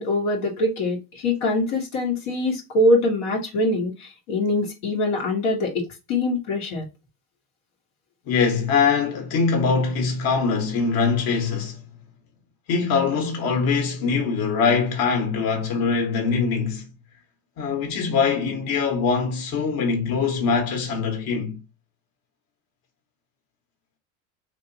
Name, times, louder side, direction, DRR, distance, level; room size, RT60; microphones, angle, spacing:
voice 1, 0.0-6.9, left 1 dB, 70° left, 1.4 m, -23 dB
voice 2, 8.3-11.8 12.7-16.8 17.6-21.6, left 5 dB, 55° left, 1.4 m, -23 dB
3.0 x 2.9 x 2.6 m
supercardioid pair, 100°, 42 cm